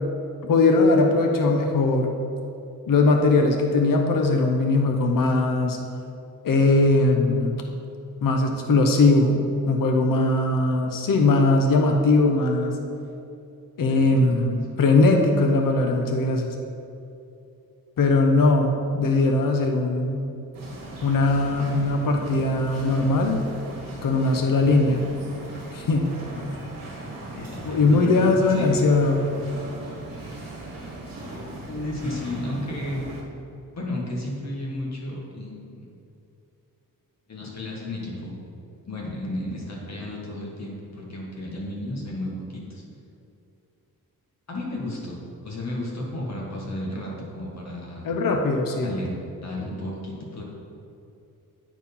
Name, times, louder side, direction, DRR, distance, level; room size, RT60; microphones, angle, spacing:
voice 1, 0.4-2.2 2.9-5.8 6.4-7.6 8.2-9.4 9.7-12.8 13.8-16.5 18.0-20.2 21.0-23.4 24.0-25.0 25.7-26.4 27.6-29.3 48.0-48.9, left 3 dB, 65° left, 3 dB, 0.8 m, -20 dB
voice 2, 13.9-14.8 27.3-28.2 28.5-28.8 31.7-33.1 33.7-35.9 37.3-38.4 38.8-42.8 44.5-45.2 45.4-48.1 48.8-49.1 49.4-50.4, left 1 dB, 45° left, -2 dB, 1.8 m, -33 dB
sound 1, 20.5-33.2, right 1 dB, 65° right, 1.7 m, -38 dB
9.1 x 4.6 x 5.4 m, 2.7 s
wide cardioid pair, 135°, 36 cm